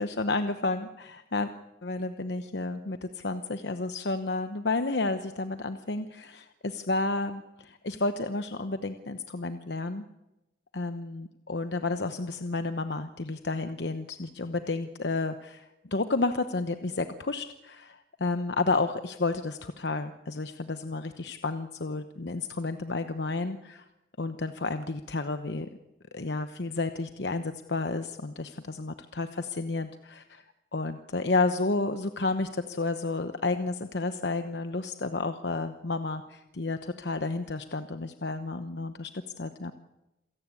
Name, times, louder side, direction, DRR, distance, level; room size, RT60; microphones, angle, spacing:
voice 1, 0.0-1.5 1.8-10.0 10.7-23.8 24.2-25.7 26.1-30.4 30.7-39.1 39.4-39.7, left 3 dB, 65° left, 9 dB, 0.9 m, -31 dB
27.5 x 17.0 x 8.4 m, 0.96 s
head